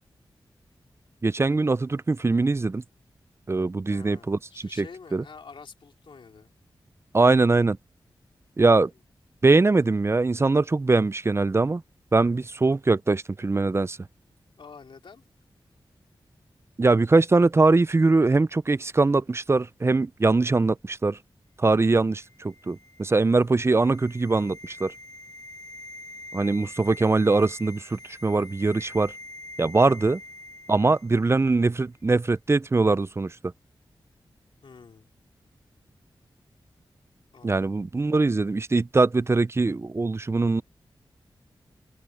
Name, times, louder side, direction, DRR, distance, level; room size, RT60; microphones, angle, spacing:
voice 1, 1.2-2.8 3.5-4.4 4.8-4.9 5.1-5.2 7.1-7.8 8.6-8.9 9.4-11.8 12.1-14.0 16.8-21.2 21.6-24.9 26.3-29.1 29.6-30.2 30.7-33.3 37.4-40.6, right 3 dB, 30° right, 0.5 m, -22 dB
voice 2, 3.9-6.5 14.5-15.3 29.7-30.1 34.6-35.1 37.3-37.8, left 5 dB, 75° left, 3.3 m, -48 dB
sound 1, 22.1-31.4 31.6-31.8, left 1 dB, 40° left, 1.7 m, -45 dB
wide cardioid pair, 75°, 9 cm